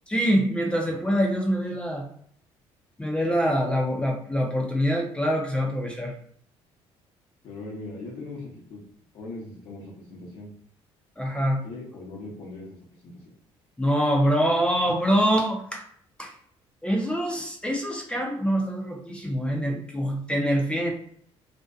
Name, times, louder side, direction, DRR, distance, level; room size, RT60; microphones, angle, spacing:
voice 1, 0.1-2.1 3.0-6.1 11.2-11.6 13.8-15.9 16.2-16.3 16.8-20.9, equal, 10° left, 0 dB, 0.5 m, -25 dB
voice 2, 7.4-8.8 9.1-10.5 11.6-12.8 13.0-13.2, left 2 dB, 65° left, -2 dB, 0.7 m, -39 dB
2.5 x 2.1 x 2.3 m, 0.64 s
cardioid pair, 115°, 11 cm